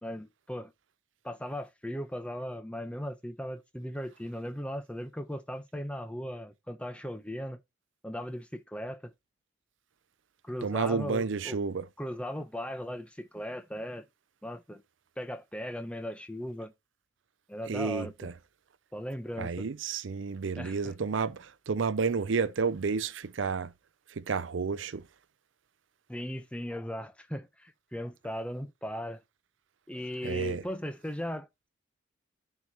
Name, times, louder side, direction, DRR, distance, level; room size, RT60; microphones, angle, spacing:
voice 1, 0.0-0.7 1.2-7.6 8.0-9.1 10.4-11.6 12.0-14.0 14.4-14.8 15.2-16.7 17.5-18.3 18.9-19.7 20.6-20.9 26.1-29.2 29.9-31.7, equal, 5° left, 0.8 m, -38 dB
voice 2, 10.6-11.8 17.7-18.3 19.4-23.7 24.2-25.0 30.2-30.6, right 5 dB, 75° right, 0.5 m, -31 dB
13.5 x 4.6 x 2.9 m
head